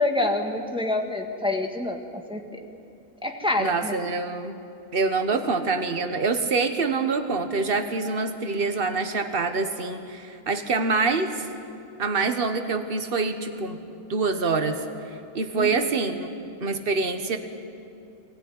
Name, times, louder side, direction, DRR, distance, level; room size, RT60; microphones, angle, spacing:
voice 1, 0.0-2.6 3.2-3.9 15.6-16.0, left 2 dB, 5° right, 2 dB, 1.6 m, -27 dB
voice 2, 3.6-4.6 4.9-11.4 12.0-13.8 14.1-14.8 15.3-16.3 16.6-17.4, right 4 dB, 40° right, 8 dB, 1.5 m, -25 dB
21.5 x 18.5 x 9.9 m, 2.5 s
omnidirectional pair, 1.6 m